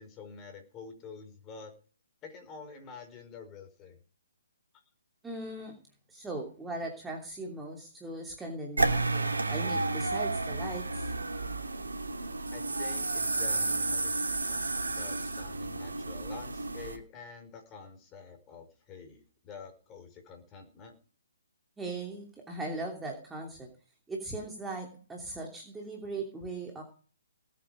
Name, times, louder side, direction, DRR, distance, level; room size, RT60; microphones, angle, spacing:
voice 1, 0.0-1.7 2.2-4.0 4.7-4.8 12.5-21.0, left 5 dB, 20° left, 6 dB, 5.2 m, -48 dB
voice 2, 5.2-5.7 6.1-11.1 21.8-23.7 24.1-26.8, right 2 dB, 5° right, 0 dB, 2.9 m, -39 dB
sound 1, 8.8-17.0, right 3 dB, 80° right, 2.8 m, -31 dB
19.5 x 8.7 x 5.3 m, 0.43 s
figure-of-eight pair, 140°, 0 cm